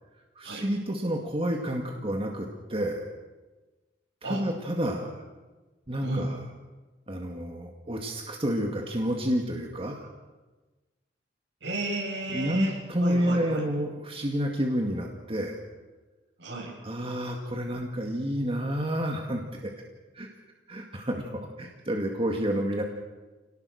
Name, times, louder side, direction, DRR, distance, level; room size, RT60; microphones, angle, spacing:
voice 1, 0.4-3.1 4.2-5.2 5.9-6.4 7.1-10.1 12.3-15.6 16.8-19.7 20.1-20.3 20.7-22.8, equal, 30° right, 1 dB, 2.1 m, -29 dB
voice 2, 6.0-6.3 11.6-13.7 16.4-16.8, right 2 dB, 80° right, 0 dB, 6.2 m, -34 dB
27.5 x 19.0 x 6.5 m, 1.2 s
head